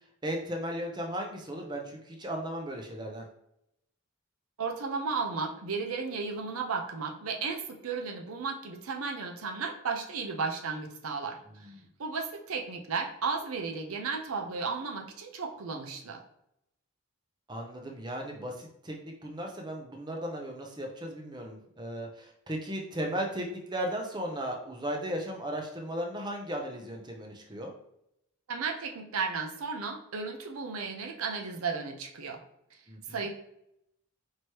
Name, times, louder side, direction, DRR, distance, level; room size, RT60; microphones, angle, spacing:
voice 1, 0.2-3.2 11.5-11.7 17.5-27.7 32.9-33.2, equal, 20° right, 1 dB, 0.6 m, -36 dB
voice 2, 4.6-11.7 12.0-16.2 28.5-32.4 33.1-33.3, right 4 dB, 80° right, 3 dB, 0.6 m, -34 dB
4.6 x 3.0 x 2.9 m, 0.79 s
head